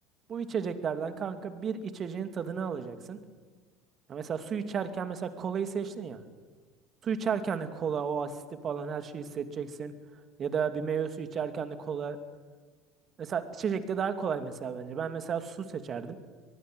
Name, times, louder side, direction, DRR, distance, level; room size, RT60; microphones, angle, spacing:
voice 1, 0.3-3.2 4.1-6.2 7.1-9.9 10.4-12.2 13.2-16.2, right 6 dB, 40° right, 9 dB, 2.6 m, -33 dB
24.0 x 19.5 x 9.4 m, 1.4 s
hypercardioid pair, 70°, 0 cm